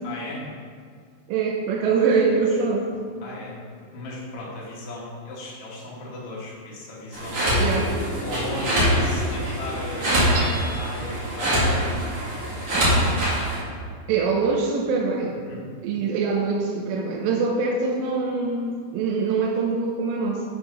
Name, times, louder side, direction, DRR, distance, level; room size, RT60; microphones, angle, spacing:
voice 1, 0.0-0.5 1.9-2.6 3.2-3.6 3.9-7.7 8.2-12.2 12.7-13.4 15.3-15.6, left 2 dB, 65° left, -6 dB, 1.4 m, -36 dB
voice 2, 1.3-2.8 7.6-7.9 14.1-15.4 15.8-20.4, right 4 dB, 85° right, -2 dB, 3.2 m, -23 dB
sound 1, 7.1-13.6, equal, 45° right, 2.1 m, -24 dB
sound 2, 7.5-11.2, left 4 dB, 85° left, 2.5 m, -37 dB
Hammer / Chink clink, 10.3-11.1, right 1 dB, 65° right, 1.3 m, -34 dB
7.4 x 5.9 x 5.3 m, 2.1 s
omnidirectional pair, 5.6 m